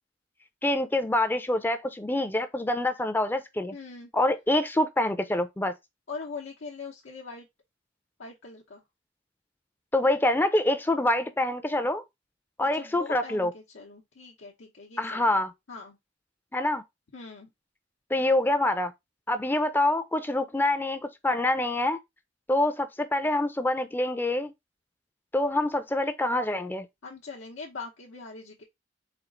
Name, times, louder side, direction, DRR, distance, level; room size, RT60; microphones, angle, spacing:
voice 1, 0.6-3.8 4.1-5.7 9.9-12.0 12.6-13.5 15.0-15.5 16.5-16.8 18.1-18.9 19.3-22.0 22.5-24.5 25.3-26.9, left 1 dB, 10° left, 0.4 m, -26 dB
voice 2, 3.7-4.1 6.1-7.5 8.2-8.8 12.7-15.4 15.7-16.0 17.1-17.5 27.0-28.6, left 4 dB, 85° left, 0.8 m, -42 dB
4.3 x 2.4 x 3.7 m
head